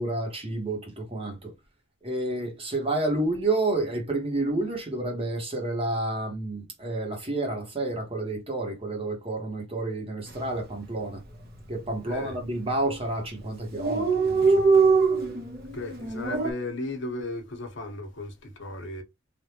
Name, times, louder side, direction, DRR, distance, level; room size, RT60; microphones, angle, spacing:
voice 1, 0.0-1.5 2.0-11.2 11.7-14.4, right 2 dB, 30° right, 1.2 m, -30 dB
Dog, 10.3-10.5 10.8-10.9 11.2-11.9 12.5-12.7 13.0-13.1 13.3-13.4 13.6-16.5, right 4 dB, 50° right, 0.9 m, -23 dB
voice 2, 15.7-19.0, left 2 dB, 65° left, 1.0 m, -35 dB
3.4 x 2.5 x 2.8 m
head